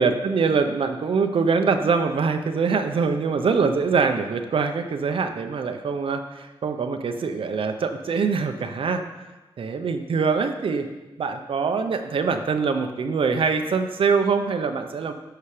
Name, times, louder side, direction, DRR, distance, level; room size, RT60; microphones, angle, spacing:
voice 1, 0.0-9.0 9.6-10.9 11.2-15.1, right 5 dB, 65° right, 6 dB, 0.8 m, -23 dB
12.5 x 5.8 x 5.0 m, 1.1 s
wide cardioid pair, 180°, 10 cm